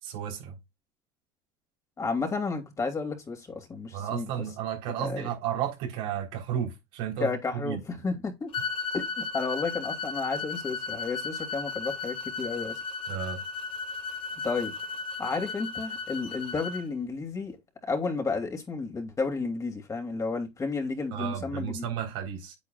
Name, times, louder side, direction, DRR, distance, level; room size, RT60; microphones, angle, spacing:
voice 1, 0.0-0.6 3.9-7.3 7.6-7.8 13.1-13.4 21.1-22.6, right 9 dB, 75° right, 3.7 m, -33 dB
voice 2, 2.0-4.4 4.9-5.3 7.2-8.5 8.9-12.8 14.4-14.7 15.2-17.6 17.8-21.9, left 4 dB, 25° left, 2.8 m, -32 dB
sound 1, 8.5-16.8, left 5 dB, 45° left, 1.8 m, -35 dB
8.6 x 8.5 x 2.4 m
supercardioid pair, 100°, 13 cm